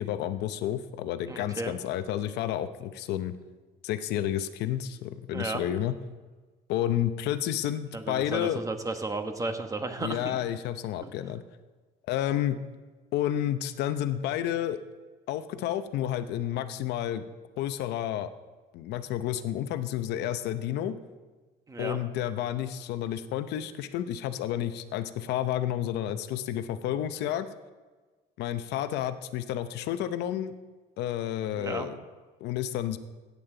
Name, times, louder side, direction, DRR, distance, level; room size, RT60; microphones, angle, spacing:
voice 1, 0.0-3.3 3.8-5.9 6.7-8.6 10.0-11.4 12.1-12.6 13.1-14.8 15.3-17.2 17.6-18.3 18.7-21.0 21.8-27.5 28.4-30.5 31.0-32.0 32.4-33.0, left 11 dB, 85° left, 11 dB, 0.7 m, -30 dB
voice 2, 1.3-1.7 5.3-5.6 7.9-10.4 11.0-11.1 21.7-22.0 31.5-31.9, right 3 dB, 20° right, 6 dB, 1.2 m, -34 dB
16.5 x 8.5 x 3.9 m, 1.3 s
cardioid pair, 110°, 17 cm